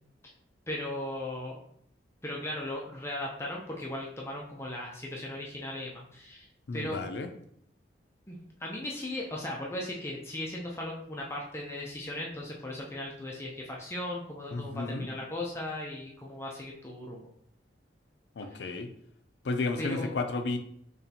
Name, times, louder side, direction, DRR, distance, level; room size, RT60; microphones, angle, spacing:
voice 1, 0.7-1.6 2.2-6.5 6.7-7.0 8.3-17.3 18.5-18.6 19.8-20.1, left 1 dB, 15° left, -2 dB, 0.5 m, -37 dB
voice 2, 6.7-7.3 14.5-15.1 18.4-18.9 19.4-20.6, left 3 dB, 70° left, 7 dB, 0.5 m, -32 dB
4.2 x 3.1 x 2.8 m, 0.69 s
head